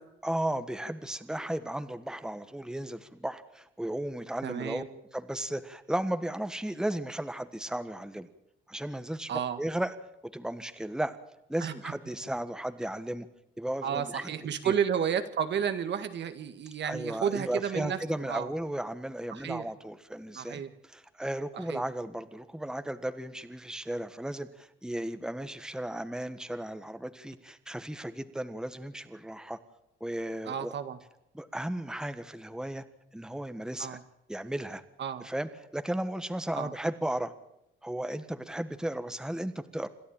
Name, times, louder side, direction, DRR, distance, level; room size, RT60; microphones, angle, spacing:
voice 1, 0.2-4.8 5.1-8.3 8.7-9.9 10.3-11.2 11.5-13.3 13.6-14.3 14.6-14.8 16.8-29.6 30.0-30.7 31.3-32.8 33.1-34.0 34.3-34.8 35.2-37.3 37.8-39.9, right 1 dB, 5° right, 10 dB, 1.4 m, -35 dB
voice 2, 4.4-4.9 9.3-9.6 11.6-11.9 13.8-18.5 19.3-19.7 20.4-20.7 21.7-21.8 30.4-31.0 33.8-34.0 35.0-35.3 36.6-36.7, right 8 dB, 65° right, 9 dB, 1.7 m, -32 dB
27.5 x 12.0 x 8.9 m, 0.84 s
cardioid pair, 90°, 20 cm